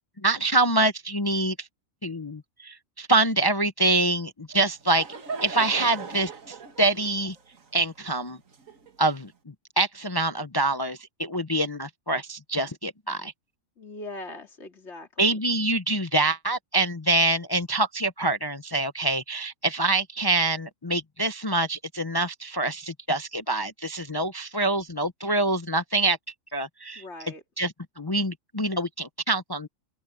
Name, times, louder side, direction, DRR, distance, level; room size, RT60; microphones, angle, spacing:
voice 1, 0.2-1.7 2.0-5.1 5.4-7.4 7.7-8.4 9.0-9.3 9.8-13.3 15.2-26.2 26.5-27.0 27.6-29.7, right 2 dB, 25° left, 0.5 m, -25 dB
Laughter / Crowd, 4.5-9.2, right 5 dB, 75° right, 2.1 m, -39 dB
voice 2, 13.8-15.4 26.9-27.4, left 2 dB, 55° left, 3.2 m, -41 dB
omnidirectional pair, 1.4 m